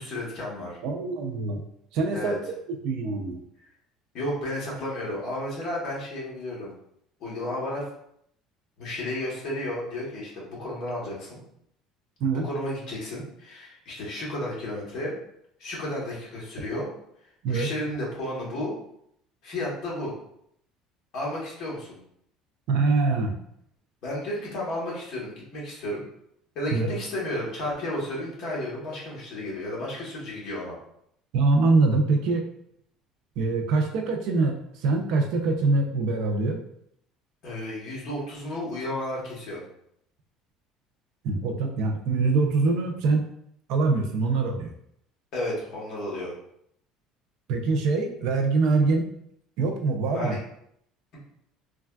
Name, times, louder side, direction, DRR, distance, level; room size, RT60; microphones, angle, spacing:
voice 1, 0.0-0.8 2.1-2.4 3.6-3.7 4.1-6.7 7.2-7.9 8.8-11.4 12.3-15.2 15.6-16.9 17.5-18.7 19.4-20.1 21.1-22.0 24.0-26.0 26.5-30.8 37.4-39.6 45.3-46.3 50.1-50.4, left 1 dB, 45° left, -5 dB, 1.0 m, -32 dB
voice 2, 0.8-1.6 1.9-2.4 2.8-3.4 12.2-12.4 17.4-17.7 22.7-23.4 26.7-26.9 31.3-32.4 33.4-36.6 41.2-43.3 43.7-44.7 47.5-49.1 49.6-50.4, right 3 dB, 55° right, 4 dB, 0.4 m, -24 dB
3.2 x 2.3 x 2.2 m, 0.72 s
cardioid pair, 175°, 0 cm